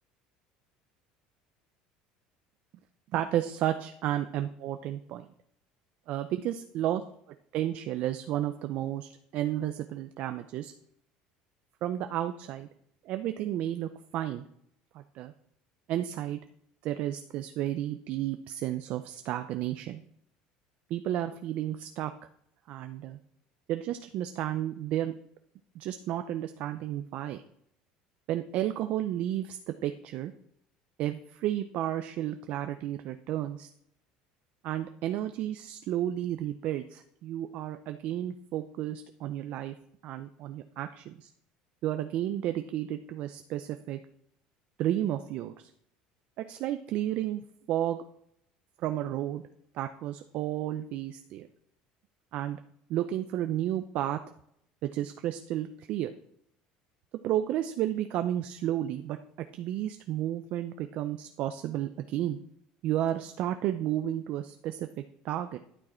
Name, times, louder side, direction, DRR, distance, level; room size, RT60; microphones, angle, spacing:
voice 1, 3.1-5.3 6.1-7.0 7.5-10.7 11.8-12.7 13.0-14.4 14.9-15.3 15.9-16.4 16.8-20.0 20.9-22.1 22.7-23.2 23.7-25.1 25.7-27.4 28.3-30.3 31.0-33.7 34.6-39.7 40.0-41.3 41.8-44.0 44.8-45.7 46.4-47.4 47.7-48.0 48.8-49.4 49.7-51.5 52.3-52.6 52.9-54.2 54.8-56.1 57.2-59.2 59.5-62.4 62.8-64.9 65.2-65.6, right 12 dB, 55° right, 9 dB, 0.5 m, -32 dB
11.5 x 6.3 x 4.4 m, 0.72 s
cardioid pair, 130°, 3 cm